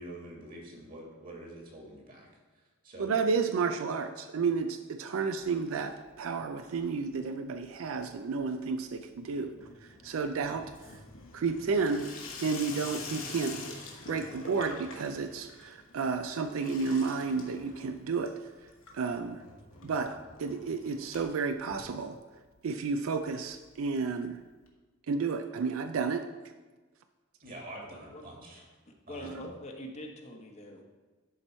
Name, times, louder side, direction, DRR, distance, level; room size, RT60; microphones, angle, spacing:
voice 1, 0.0-2.3 2.5-3.1 27.4-28.6 29.1-29.3, right 1 dB, 45° right, -2 dB, 2.1 m, -46 dB
voice 2, 3.0-9.5 10.0-11.0 11.3-12.1 12.4-13.7 14.1-18.3 18.9-19.4 19.8-22.2 22.6-24.4 25.1-26.2, right 5 dB, 70° right, 8 dB, 0.4 m, -31 dB
Water tap faucet / Sink (filling or washing), 5.4-6.2 6.5-7.0 7.3-22.6 22.9-23.0 23.2-23.3 23.5-23.6 24.7-24.8, left 4 dB, 75° left, 1.3 m, -47 dB
voice 3, 27.9-28.2 28.9-30.8, equal, 35° left, 2 dB, 0.9 m, -44 dB
11.0 x 4.4 x 4.3 m, 1.3 s
head